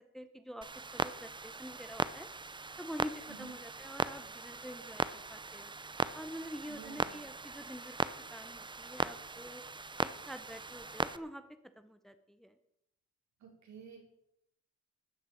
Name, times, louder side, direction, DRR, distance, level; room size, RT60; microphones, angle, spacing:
voice 1, 0.0-2.3 2.8-5.7 6.1-8.0 8.3-9.6 10.0-11.5 11.8-12.6, equal, ahead, 10 dB, 1.0 m, -47 dB
Clock, 0.6-11.2, right 3 dB, 15° right, 0.6 m, -39 dB
voice 2, 6.7-7.3 13.4-14.0, right 7 dB, 70° right, 0 dB, 4.9 m, -51 dB
13.5 x 6.6 x 9.0 m, 0.82 s
cardioid pair, 90°, 30 cm